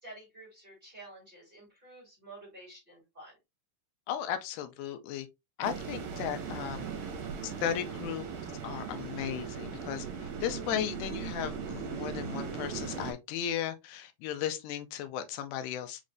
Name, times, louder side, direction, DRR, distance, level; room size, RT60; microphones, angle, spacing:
voice 1, 0.0-3.3, right 2 dB, 20° right, 2.0 m, -50 dB
voice 2, 4.1-5.3 5.6-6.9 7.4-8.3 8.6-16.1, left 9 dB, 85° left, 2.0 m, -36 dB
sound 1, 5.6-13.1, right 6 dB, 70° right, 2.1 m, -38 dB
5.3 x 3.1 x 2.5 m
omnidirectional pair, 3.6 m